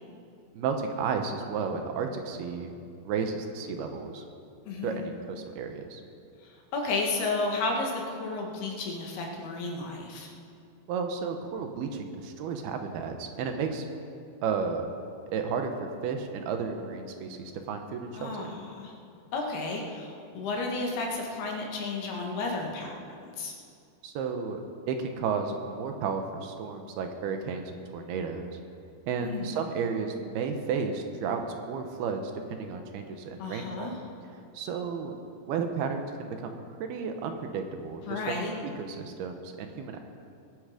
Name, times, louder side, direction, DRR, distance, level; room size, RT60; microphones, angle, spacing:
voice 1, 0.5-2.7 3.0-4.2 4.8-6.0 10.9-13.8 14.4-14.8 15.3-18.5 24.0-24.6 24.9-28.5 29.1-32.2 32.5-34.0 34.5-35.2 35.4-38.3 38.8-40.0, right 5 dB, 75° right, 5 dB, 2.9 m, -33 dB
voice 2, 4.7-5.1 6.4-10.3 18.1-18.9 19.3-23.5 29.2-29.6 33.4-34.0 38.1-38.5, left 3 dB, 70° left, 0 dB, 3.6 m, -33 dB
21.5 x 10.0 x 5.0 m, 2.4 s
omnidirectional pair, 4.7 m